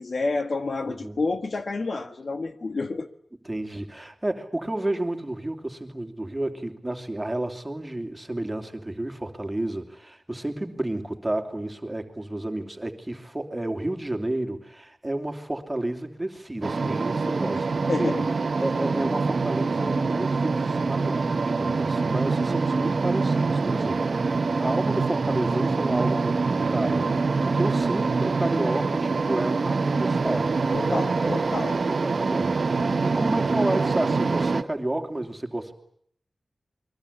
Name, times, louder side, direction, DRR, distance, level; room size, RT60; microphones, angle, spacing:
voice 1, 0.0-3.1 17.9-18.3 30.7-31.8, left 3 dB, 60° left, 1.6 m, -29 dB
voice 2, 0.8-1.2 3.4-18.1 18.6-31.3 32.0-35.7, right 1 dB, 15° right, 3.1 m, -31 dB
sound 1, 16.6-34.6, right 4 dB, 60° right, 1.2 m, -25 dB
29.0 x 22.5 x 8.6 m
wide cardioid pair, 110°, 0 cm